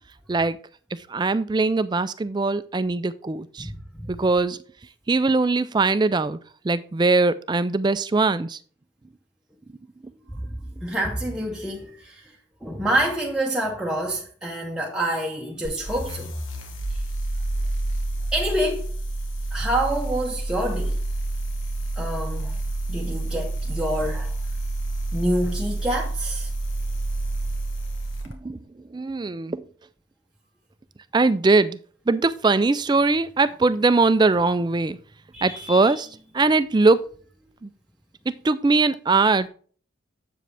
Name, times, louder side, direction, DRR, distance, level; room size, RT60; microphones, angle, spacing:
voice 1, 0.9-3.7 4.1-4.6 5.1-6.4 6.6-8.6 28.3-28.6 28.9-29.6 31.1-31.8 32.1-35.0 35.4-36.1 36.3-37.1 37.6-37.7 38.3-39.5, right 3 dB, 20° right, 0.3 m, -21 dB
voice 2, 3.6-4.1 10.3-10.4 10.8-12.3 12.6-16.3 16.9-17.0 18.3-18.9 19.5-21.0 22.0-22.6 22.9-24.4 25.1-26.5 35.3-36.0, right 1 dB, 5° right, 0.8 m, -27 dB
sound 1, 15.6-28.3, right 2 dB, 80° left, 1.6 m, -28 dB
7.9 x 7.5 x 3.4 m
head